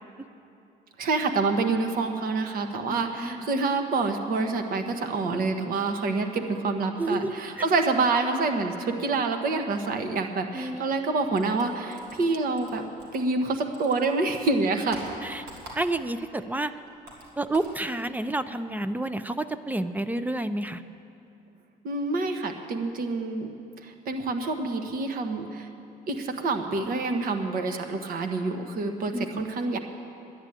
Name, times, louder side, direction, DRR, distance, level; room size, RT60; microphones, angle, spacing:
voice 1, 1.0-12.8 13.1-15.0 21.8-23.5 23.8-25.7 26.1-29.8, right 3 dB, 55° right, 6 dB, 1.3 m, -27 dB
voice 2, 7.0-7.6 10.5-10.8 15.2-15.5 15.8-16.7 17.4-20.8 29.1-29.4, right 2 dB, 10° right, 12 dB, 0.5 m, -29 dB
sound 1, 11.3-13.5 13.7-16.2 16.5-17.8, right 1 dB, 80° right, 3.2 m, -45 dB
11.0 x 10.0 x 8.9 m, 2.7 s
cardioid pair, 110°, 17 cm